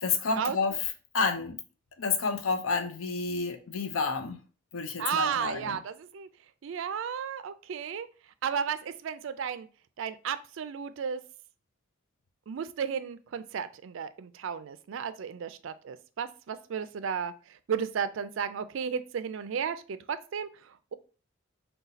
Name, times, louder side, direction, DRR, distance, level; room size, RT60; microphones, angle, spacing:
voice 1, 0.0-1.6 2.0-4.4 4.7-5.8, left 4 dB, 80° left, 7 dB, 0.6 m, -30 dB
voice 2, 5.0-6.3 6.6-8.1 8.4-9.7 10.0-11.2 12.5-17.3 17.7-20.5, right 7 dB, 65° right, 13 dB, 0.3 m, -33 dB
4.0 x 2.3 x 4.0 m, 0.37 s
head